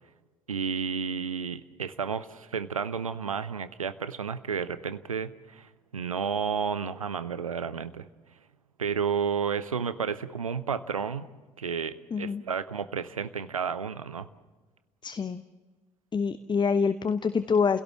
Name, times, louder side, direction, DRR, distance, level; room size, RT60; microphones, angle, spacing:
voice 1, 0.5-8.1 8.8-11.3 11.6-14.3, right 6 dB, 85° right, 14 dB, 0.7 m, -31 dB
voice 2, 12.1-12.4 15.0-15.4 16.1-17.8, left 5 dB, 25° left, 13 dB, 0.9 m, -26 dB
29.5 x 17.0 x 7.2 m, 1.3 s
figure-of-eight pair, 50°, 17 cm